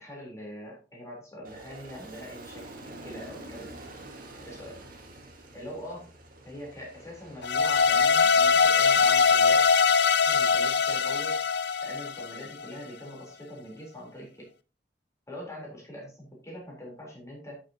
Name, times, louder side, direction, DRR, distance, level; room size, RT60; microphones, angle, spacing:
voice 1, 0.0-3.7 4.5-4.8 5.5-6.1 6.4-9.7 10.2-11.4 11.8-14.5 15.3-17.6, equal, 15° left, -3 dB, 3.7 m, -43 dB
Aircraft, 1.4-8.1, right 1 dB, 55° right, 1.8 m, -46 dB
sound 1, 7.4-12.6, left 5 dB, 70° left, 0.6 m, -22 dB
12.5 x 6.5 x 2.9 m, 0.33 s
head